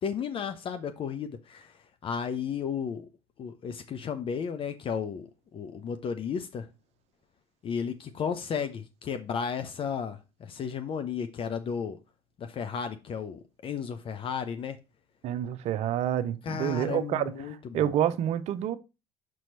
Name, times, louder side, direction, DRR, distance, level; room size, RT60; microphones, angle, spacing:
voice 1, 0.0-1.7 2.0-3.1 3.4-5.3 5.5-6.7 7.6-12.0 12.4-14.8 16.4-17.9, left 7 dB, 45° left, 0.7 m, -33 dB
voice 2, 15.2-18.8, right 11 dB, 55° right, 0.7 m, -28 dB
6.2 x 4.4 x 4.1 m
hypercardioid pair, 60°, 13 cm